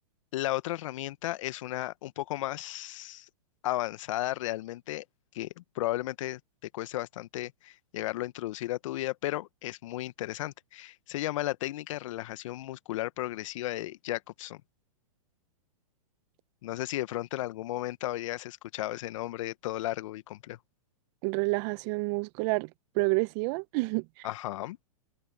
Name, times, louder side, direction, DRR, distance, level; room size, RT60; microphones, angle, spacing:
voice 1, 0.3-3.3 3.6-5.0 5.3-6.4 6.7-14.6 16.6-20.6 24.2-24.8, left 15 dB, 55° left, 1.3 m, -34 dB
voice 2, 21.2-22.7 22.9-24.0, right 27 dB, 40° right, 1.2 m, -28 dB
hypercardioid pair, 120°, 19 cm